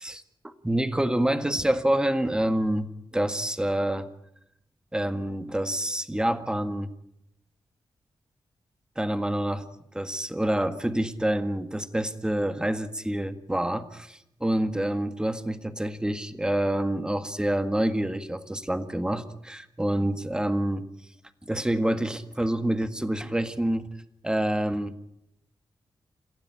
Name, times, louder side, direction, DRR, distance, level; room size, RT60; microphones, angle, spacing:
voice 1, 0.0-4.1 4.9-6.9 9.0-9.7 9.9-20.9 21.5-23.9 24.2-25.0, right 1 dB, 10° right, 9 dB, 1.8 m, -27 dB
27.5 x 16.0 x 10.0 m, 0.80 s
wide cardioid pair, 105°, 9 cm